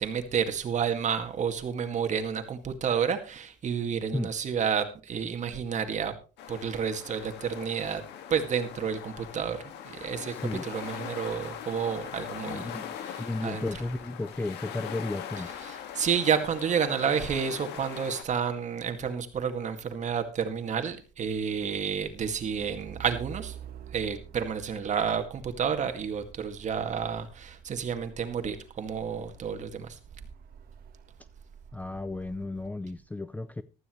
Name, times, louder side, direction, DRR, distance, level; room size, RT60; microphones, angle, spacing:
voice 1, 0.0-6.1 6.5-8.0 8.3-10.3 10.6-13.7 15.6-23.6 23.9-30.0, right 7 dB, 45° right, 2.0 m, -30 dB
sound 1, 6.4-18.2, left 9 dB, 85° left, 1.9 m, -41 dB
voice 2, 12.4-15.5 31.7-33.6, left 2 dB, 10° left, 0.5 m, -34 dB
Truck, 21.1-32.5, right 9 dB, 60° right, 1.4 m, -48 dB
15.0 x 12.5 x 3.1 m
cardioid pair, 110°, 17 cm